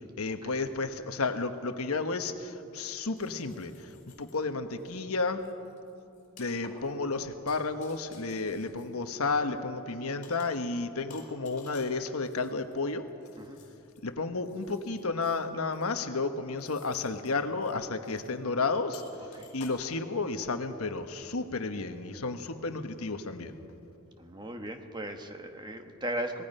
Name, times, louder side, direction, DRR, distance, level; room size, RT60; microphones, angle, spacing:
voice 1, 0.2-5.4 6.4-13.1 14.0-19.0 19.5-23.5, left 3 dB, 80° left, 8 dB, 1.2 m, -32 dB
sound 1, 1.6-1.7 3.1-4.4 4.8-5.0 5.4-9.5 10.2-10.7 11.1-14.0 14.4-15.4 15.7-16.1 16.6-17.3 17.6-17.7 18.0-18.3 18.9-19.7, left 4 dB, 35° left, 3.9 m, -55 dB
voice 2, 24.2-26.4, right 1 dB, 20° right, 5 dB, 1.2 m, -37 dB
24.5 x 19.5 x 5.5 m, 2.7 s
head